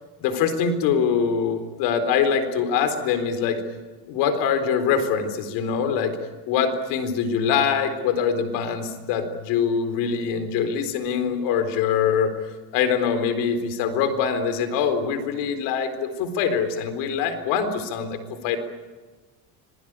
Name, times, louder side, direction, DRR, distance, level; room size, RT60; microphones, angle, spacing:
voice 1, 0.2-3.6 4.1-6.2 6.5-12.3 12.7-18.6, left 6 dB, 85° left, 9 dB, 4.2 m, -23 dB
26.5 x 22.5 x 9.0 m, 1.2 s
cardioid pair, 135°, 39 cm